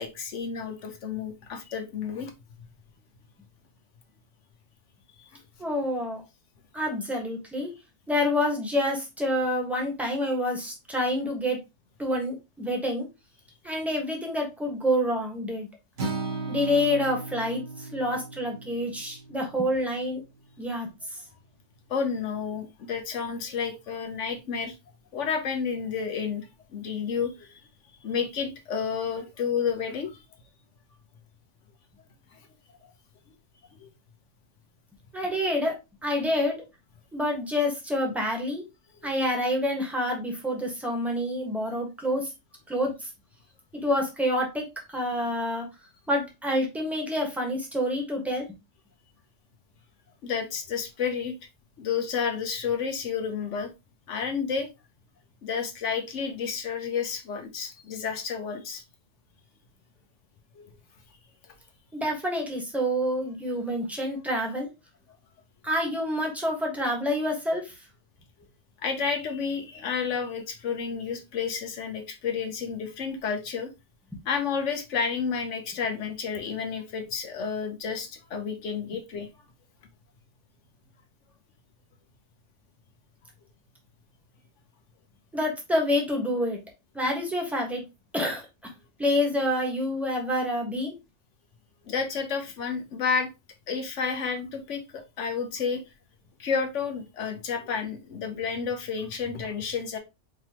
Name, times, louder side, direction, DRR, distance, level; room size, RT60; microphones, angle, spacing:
voice 1, 0.0-2.3 5.2-5.3 16.2-16.4 21.9-24.8 25.1-27.6 28.0-30.2 32.3-32.5 33.8-33.9 50.2-51.3 51.8-53.7 54.1-54.7 55.4-58.8 60.5-60.7 68.8-73.7 74.2-79.3 91.9-93.3 93.7-95.8 96.4-100.0, left 6 dB, 75° left, 1.2 m, -31 dB
voice 2, 5.6-6.2 6.7-7.7 8.1-11.6 12.0-13.1 13.6-15.7 16.5-20.2 20.6-21.2 35.1-35.8 36.0-36.6 37.1-38.6 39.0-42.3 42.7-43.1 43.8-44.6 44.9-45.7 46.1-48.5 61.9-64.7 65.6-67.7 85.3-86.6 86.9-87.8 88.1-88.4 89.0-90.9, left 1 dB, ahead, 1.3 m, -27 dB
Acoustic guitar, 16.0-20.2, right 3 dB, 60° right, 1.7 m, -36 dB
5.1 x 3.1 x 2.9 m
omnidirectional pair, 1.2 m